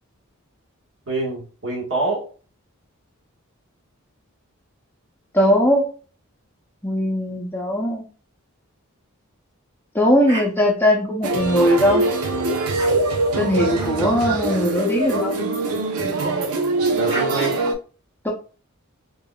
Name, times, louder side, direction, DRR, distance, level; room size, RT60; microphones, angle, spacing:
voice 1, 1.1-2.3 16.9-17.6, right 2 dB, 60° right, -2 dB, 1.4 m, -25 dB
voice 2, 5.3-5.9 6.8-8.1 9.9-12.0 13.4-15.4 18.2-18.3, equal, 10° left, -1 dB, 0.6 m, -19 dB
sound 1, 10.3-10.5 11.5-12.0 12.8-12.9 13.8-13.9 14.8-15.0 16.5-16.6 17.1-17.3, right 1 dB, 20° right, 1.0 m, -33 dB
sound 2, 11.2-17.7, right 2 dB, 85° right, 0.7 m, -23 dB
3.5 x 3.3 x 2.3 m, 0.37 s
head